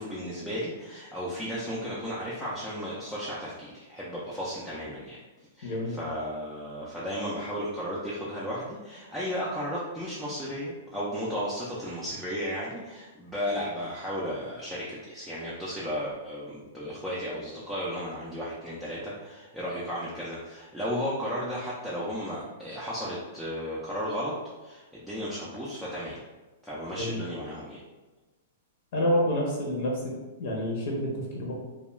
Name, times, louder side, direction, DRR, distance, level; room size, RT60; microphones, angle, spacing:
voice 1, 0.0-5.2 5.6-24.3 24.6-26.2 26.6-27.8, equal, ahead, -9 dB, 0.4 m, -34 dB
voice 2, 5.6-6.0 27.0-27.2 28.9-30.1 30.4-31.5, equal, 55° left, -3 dB, 0.7 m, -28 dB
2.3 x 2.2 x 3.0 m, 1.2 s
hypercardioid pair, 145°, 0 cm